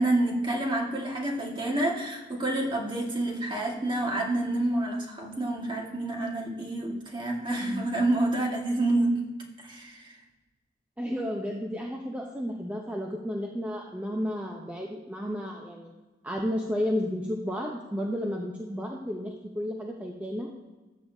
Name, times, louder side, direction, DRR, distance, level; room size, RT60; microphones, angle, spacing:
voice 1, 0.0-9.2 9.6-10.1, right 2 dB, 25° right, -1 dB, 1.8 m, -28 dB
voice 2, 11.0-15.9 16.2-20.5, equal, 10° right, -1 dB, 0.8 m, -32 dB
14.0 x 8.9 x 2.8 m, 1.2 s
head